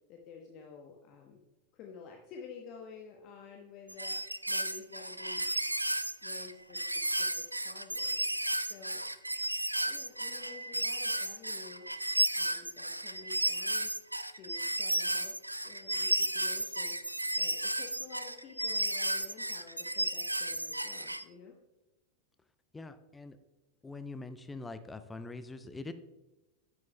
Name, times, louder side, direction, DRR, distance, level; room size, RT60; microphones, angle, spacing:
voice 1, 0.1-1.4 1.7-5.5 6.2-8.3 8.6-9.0 9.7-12.0 12.3-14.0 14.3-15.4 15.6-17.0 17.4-21.5, left 5 dB, 40° left, 1 dB, 1.0 m, -51 dB
sound 1, 3.9-21.2, right 1 dB, 85° right, 0.3 m, -33 dB
voice 2, 22.7-23.4 23.8-25.9, left 3 dB, 10° left, 11 dB, 0.5 m, -43 dB
9.5 x 9.5 x 2.2 m, 1.0 s
figure-of-eight pair, 90°, 0 cm